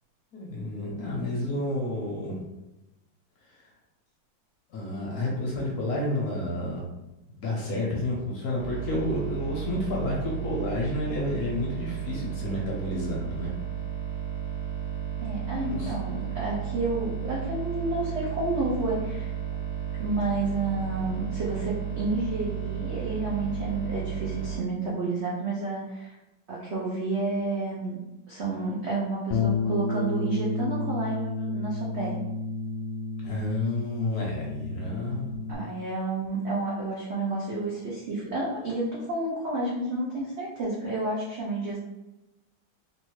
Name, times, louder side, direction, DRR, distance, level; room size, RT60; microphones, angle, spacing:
voice 1, 0.3-2.3 4.7-6.8 7.4-13.5 15.6-15.9 33.2-35.3, left 1 dB, 60° left, -3 dB, 1.2 m, -30 dB
sound 1, 8.6-24.6, right 9 dB, 20° left, 0.8 m, -33 dB
voice 2, 15.2-19.3 20.0-26.1 26.5-28.0 28.3-32.2 35.5-41.8, right 2 dB, 80° right, -6 dB, 0.5 m, -30 dB
Bass guitar, 29.3-35.6, left 3 dB, 80° left, 1.3 m, -31 dB
3.5 x 2.6 x 3.0 m, 0.96 s
omnidirectional pair, 2.2 m